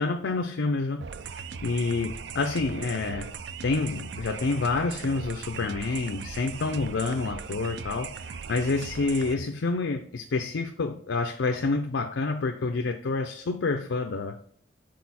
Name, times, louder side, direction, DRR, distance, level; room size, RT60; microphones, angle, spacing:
voice 1, 0.0-3.3 3.6-14.4, left 3 dB, 75° left, 5 dB, 0.5 m, -28 dB
sound 1, 1.0-9.3, right 6 dB, 60° right, 0.4 m, -39 dB
6.5 x 4.3 x 4.1 m, 0.62 s
head